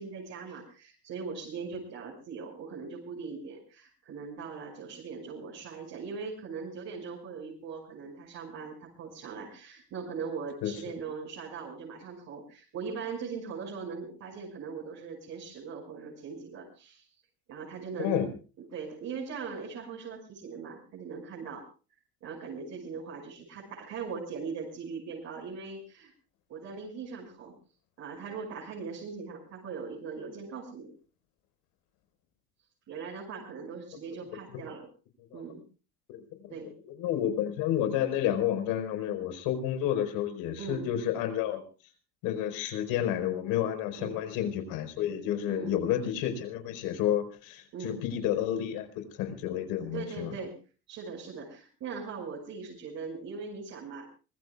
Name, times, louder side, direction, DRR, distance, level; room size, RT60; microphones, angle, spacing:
voice 1, 0.0-17.1 17.5-18.3 18.7-21.6 22.2-26.1 26.5-27.5 28.0-30.9 32.9-34.8 35.3-35.6 36.5-36.7 40.6-40.9 44.0-44.2 45.5-45.8 47.7-48.0 49.9-50.6 50.9-54.0, right 5 dB, 50° right, -3 dB, 6.0 m, -40 dB
voice 2, 36.1-36.5 36.8-41.6 42.2-50.3, left 10 dB, 80° left, 8 dB, 4.9 m, -30 dB
25.5 x 21.5 x 2.4 m, 0.35 s
cardioid pair, 160°, 34 cm